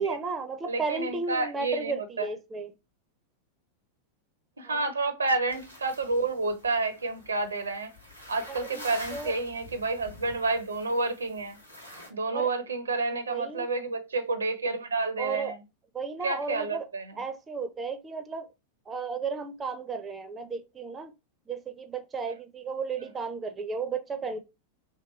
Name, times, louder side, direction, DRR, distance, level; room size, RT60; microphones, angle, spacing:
voice 1, 0.0-2.7 4.7-4.9 8.5-8.8 9.1-9.4 12.3-12.5 13.3-13.7 15.2-15.6 15.9-16.9 17.2-18.5 18.9-21.1 21.5-24.4, right 4 dB, 20° right, 0.4 m, -34 dB
voice 2, 0.7-2.3 4.6-7.9 8.3-11.6 12.1-15.6 16.2-17.2, right 3 dB, 75° right, 0.5 m, -30 dB
sound 1, 5.5-12.1, left 1 dB, 85° left, 0.9 m, -47 dB
3.1 x 2.8 x 2.9 m
figure-of-eight pair, 90°, 0 cm